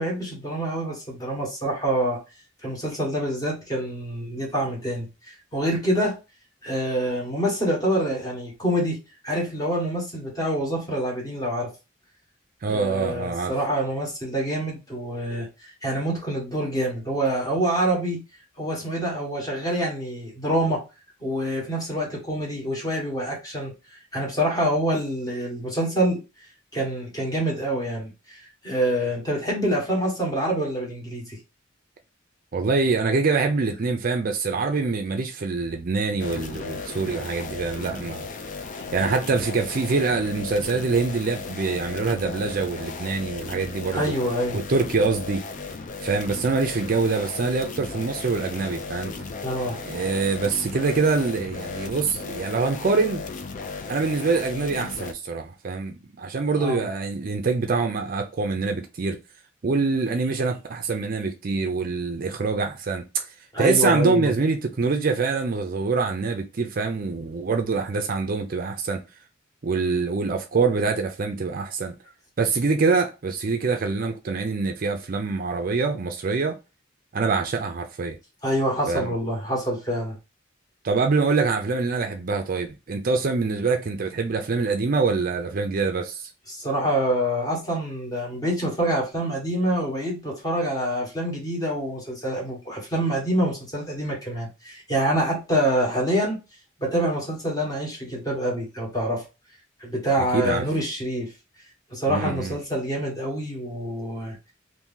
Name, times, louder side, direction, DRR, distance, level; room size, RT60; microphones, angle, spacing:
voice 1, 0.0-2.2 2.6-6.2 6.6-9.0 9.2-11.7 12.7-18.2 18.6-20.8 21.2-23.7 24.1-26.2 26.7-31.4 38.8-38.9 43.9-44.6 49.4-49.8 56.6-56.9 63.5-64.3 78.4-80.2 86.5-96.4 96.8-99.2 99.8-101.3 101.9-104.4, right 1 dB, 20° left, 1.3 m, -26 dB
voice 2, 12.6-13.5 32.5-38.3 38.9-44.1 44.5-45.4 46.0-49.1 49.8-53.2 53.9-59.2 59.6-63.2 63.6-69.0 69.6-71.9 72.4-76.6 77.1-78.2 78.9-79.1 80.8-86.3 100.2-100.6 102.1-102.6, right 4 dB, 45° right, 0.5 m, -25 dB
sound 1, 36.2-55.1, left 4 dB, 40° left, 0.4 m, -36 dB
2.7 x 2.6 x 3.6 m
head